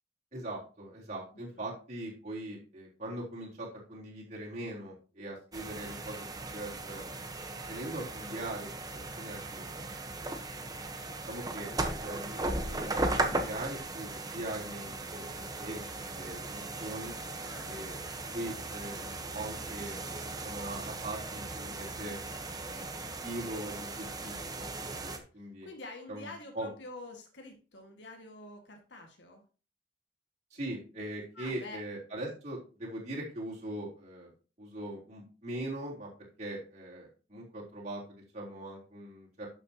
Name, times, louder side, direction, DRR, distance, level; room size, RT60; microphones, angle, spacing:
voice 1, 0.3-6.2 6.5-7.0 7.7-9.7 10.2-10.4 11.3-11.7 12.0-17.1 17.7-17.9 18.3-20.1 20.4-22.2 22.6-22.9 23.2-25.7 26.1-26.3 26.5-26.7 30.5-34.3 34.6-36.1 36.4-39.5, right 1 dB, 40° right, -5 dB, 3.7 m, -41 dB
voice 2, 1.3-1.7 17.4-18.0 25.3-29.4 31.3-31.8, left 2 dB, 80° left, 3 dB, 1.8 m, -47 dB
sound 1, 5.5-25.2, right 2 dB, 20° right, 1.0 m, -37 dB
11.5 x 7.0 x 2.9 m, 0.36 s
head